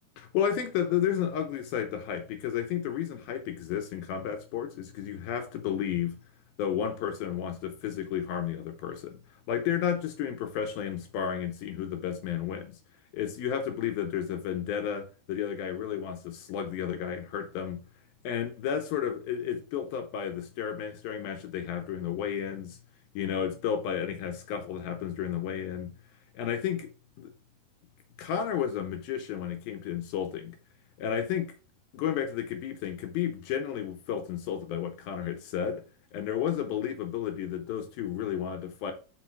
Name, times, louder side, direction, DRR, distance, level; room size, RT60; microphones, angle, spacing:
voice 1, 0.2-6.2 6.6-9.2 9.5-12.8 13.1-17.8 18.2-22.8 23.2-25.9 26.3-26.9 27.2-27.3 28.2-30.6 31.0-31.5 31.9-35.8 36.1-38.9, left 9 dB, 75° left, 2.5 m, -32 dB
6.1 x 4.8 x 4.5 m
omnidirectional pair, 4.8 m